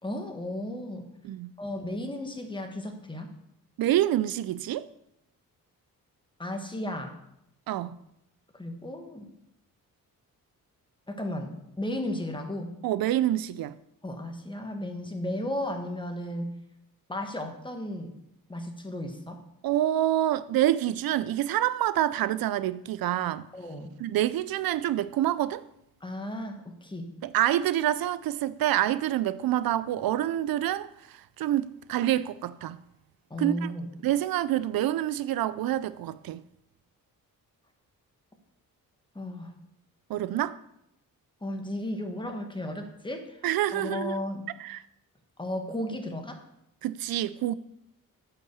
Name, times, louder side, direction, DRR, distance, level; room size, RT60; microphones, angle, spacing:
voice 1, 0.0-1.1 1.6-3.3 6.4-7.1 8.5-9.3 11.1-12.7 14.0-16.5 17.1-18.1 18.5-19.4 23.5-23.9 26.0-27.1 33.3-33.9 39.1-39.5 41.4-43.4 43.7-44.4 45.4-46.4, left 1 dB, 15° left, 1.6 m, -34 dB
voice 2, 3.8-4.9 7.7-8.0 12.8-13.8 19.6-23.5 24.0-25.6 27.2-32.8 33.4-33.7 34.0-36.4 40.1-40.6 43.4-44.2 44.6-44.8 46.8-47.5, right 13 dB, 80° right, 0.5 m, -27 dB
8.6 x 5.8 x 7.1 m
cardioid pair, 90°, 35 cm